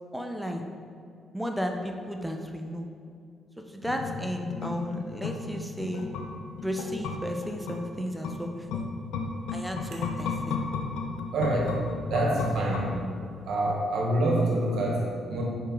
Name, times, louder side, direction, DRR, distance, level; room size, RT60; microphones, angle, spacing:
voice 1, 0.1-0.6 1.3-2.9 3.7-6.1 6.6-8.9 9.5-10.6, equal, 5° right, 3 dB, 0.7 m, -34 dB
sound 1, 3.8-13.4 13.7-13.8, left 4 dB, 90° left, 0.5 m, -35 dB
voice 2, 11.3-13.0 13.5-15.4, right 1 dB, 75° right, -2 dB, 1.3 m, -26 dB
5.5 x 4.5 x 3.9 m, 2.4 s
supercardioid pair, 65°, 0 cm